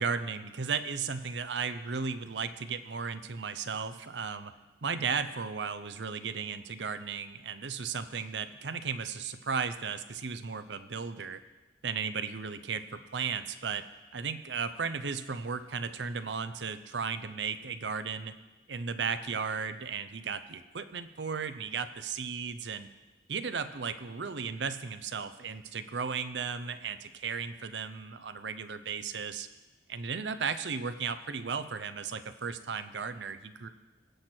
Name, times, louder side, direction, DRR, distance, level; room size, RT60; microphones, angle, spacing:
voice 1, 0.0-4.5 4.8-11.4 11.8-13.8 14.1-18.3 18.7-22.9 23.3-29.5 29.9-33.7, right 5 dB, 85° right, 12 dB, 0.7 m, -35 dB
19.5 x 7.9 x 4.5 m, 1.1 s
head